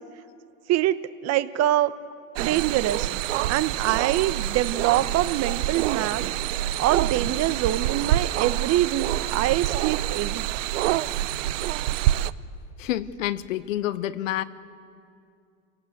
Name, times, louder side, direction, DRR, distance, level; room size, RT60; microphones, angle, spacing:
voice 1, 0.7-1.9 2.4-3.1 3.5-6.2 6.8-10.4, right 13 dB, 40° right, 14 dB, 1.0 m, -24 dB
sound 1, 2.4-12.3, right 14 dB, 70° right, 0.8 m, -26 dB
voice 2, 12.8-14.4, left 13 dB, 75° left, 14 dB, 1.2 m, -28 dB
27.0 x 18.0 x 8.1 m, 2.4 s
hypercardioid pair, 110°, 39 cm